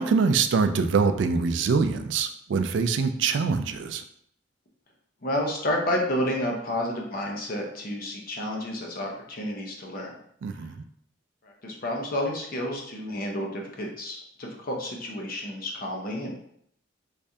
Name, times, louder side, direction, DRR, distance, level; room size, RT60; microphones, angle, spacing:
voice 1, 0.0-4.0 10.4-10.8, right 5 dB, 65° right, 8 dB, 0.3 m, -24 dB
voice 2, 5.2-10.2 11.4-16.4, left 1 dB, 50° left, 0 dB, 0.8 m, -30 dB
3.4 x 3.2 x 2.7 m, 0.67 s
head